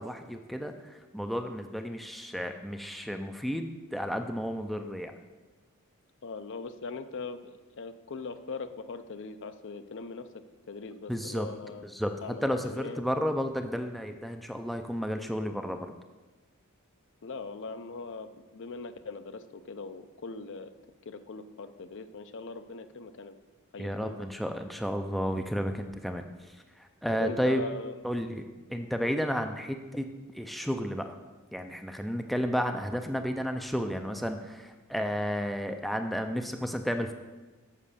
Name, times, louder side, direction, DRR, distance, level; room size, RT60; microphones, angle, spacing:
voice 1, 0.0-5.1 11.1-11.5 11.8-12.1 12.4-16.0 23.8-27.6 28.0-30.1 30.3-31.2 31.5-37.1, equal, ahead, 5 dB, 0.4 m, -32 dB
voice 2, 6.2-10.3 10.7-11.9 12.2-13.0 17.2-20.7 21.1-23.3 23.7-24.3 27.1-27.9, left 4 dB, 55° left, 10 dB, 0.5 m, -40 dB
7.5 x 5.9 x 6.7 m, 1.2 s
head